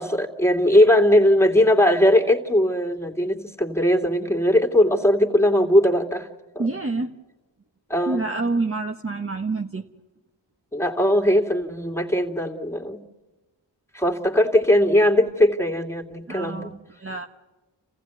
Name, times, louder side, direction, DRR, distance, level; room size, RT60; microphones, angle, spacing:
voice 1, 0.0-6.3 6.5-6.7 7.9-8.2 10.7-13.0 13.9-16.8, left 1 dB, 5° left, 2 dB, 3.0 m, -19 dB
voice 2, 6.6-7.1 8.1-9.9 16.3-17.3, right 3 dB, 30° right, 3 dB, 1.3 m, -27 dB
29.0 x 15.5 x 9.5 m, 1.2 s
cardioid pair, 40°, 46 cm